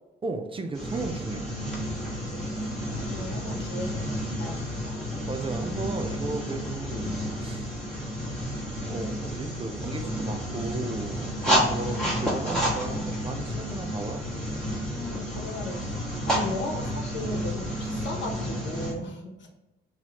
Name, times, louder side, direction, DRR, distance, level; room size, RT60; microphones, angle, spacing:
voice 1, 0.2-1.5 5.3-7.1 7.4-7.7 8.9-14.3 17.7-17.9, right 3 dB, 25° right, 5 dB, 0.5 m, -35 dB
sound 1, 0.7-18.9, equal, 5° left, 1.4 m, -30 dB
voice 2, 2.1-5.1 6.9-7.2 11.8-12.2 14.9-16.0 16.3-19.5, left 2 dB, 65° left, 1 dB, 1.0 m, -37 dB
3.9 x 2.9 x 3.0 m, 1.0 s
cardioid pair, 90°, 20 cm